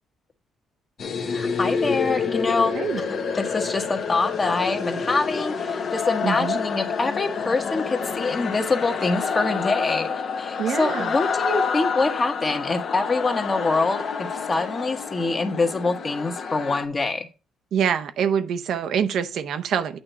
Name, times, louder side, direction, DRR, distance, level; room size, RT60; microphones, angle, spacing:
sound 1, 1.0-16.8, left 5 dB, 55° left, 0.9 m, -28 dB
voice 1, 1.3-17.3, left 3 dB, 30° left, 1.2 m, -25 dB
voice 2, 6.2-6.6 10.6-11.2 17.7-20.0, right 8 dB, 70° right, 0.7 m, -25 dB
8.7 x 2.9 x 5.5 m
cardioid pair, 90°, 0 cm